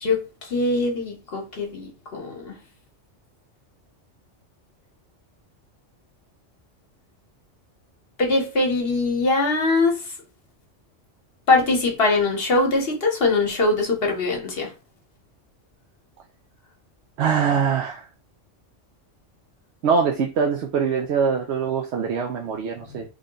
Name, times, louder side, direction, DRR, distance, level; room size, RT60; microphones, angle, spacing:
voice 1, 0.5-2.6 8.2-10.0 11.5-14.7, left 3 dB, 55° left, 1.2 m, -22 dB
voice 2, 17.2-18.0 19.8-23.0, right 6 dB, 70° right, 0.9 m, -23 dB
3.5 x 2.2 x 3.7 m
omnidirectional pair, 1.2 m